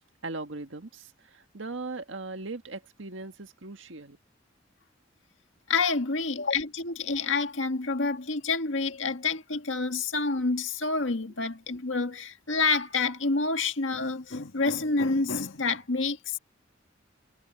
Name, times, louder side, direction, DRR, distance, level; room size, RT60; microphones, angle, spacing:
voice 1, 0.2-4.2, right 3 dB, 80° right, 1.7 m, -39 dB
voice 2, 5.7-16.4, left 4 dB, 80° left, 1.8 m, -28 dB
head